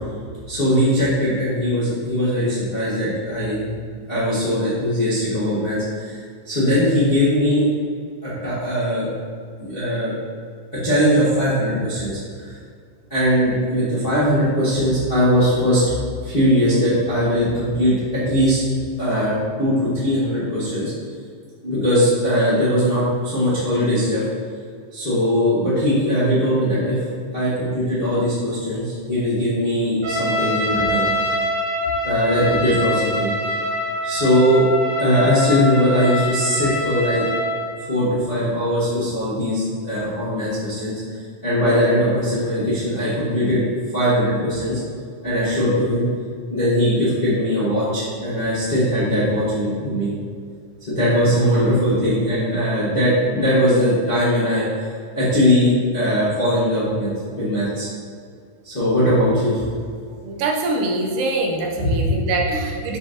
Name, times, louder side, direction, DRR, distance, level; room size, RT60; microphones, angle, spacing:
voice 1, 0.5-3.7 4.1-6.2 6.4-7.6 8.2-9.1 9.6-10.2 10.7-12.6 13.1-15.8 16.2-18.6 19.0-20.9 21.6-24.2 24.9-27.0 27.3-31.1 32.0-33.3 34.0-34.7 35.0-37.2 37.9-43.6 43.9-44.8 45.2-46.1 46.5-50.1 50.9-54.9 55.1-57.9 58.6-59.7 61.8-62.1, equal, 40° left, -11 dB, 0.8 m, -20 dB
Trumpet, 30.0-37.7, left 1 dB, 40° right, 1.3 m, -24 dB
voice 2, 60.2-63.0, right 2 dB, 85° right, 1 dB, 2.4 m, -24 dB
6.8 x 5.5 x 2.8 m, 2.1 s
omnidirectional pair, 3.8 m